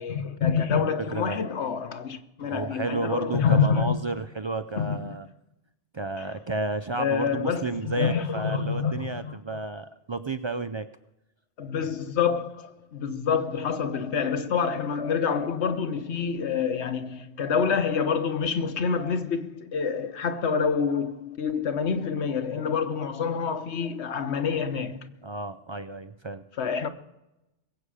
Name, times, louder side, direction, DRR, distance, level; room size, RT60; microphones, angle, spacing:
voice 1, 0.0-4.0 4.8-5.1 6.9-9.6 11.6-25.1 26.6-26.9, left 6 dB, 70° left, 1.2 m, -27 dB
voice 2, 2.4-5.3 5.9-10.9 25.2-26.4, right 3 dB, 50° right, 0.3 m, -32 dB
22.0 x 8.3 x 4.9 m
omnidirectional pair, 1.2 m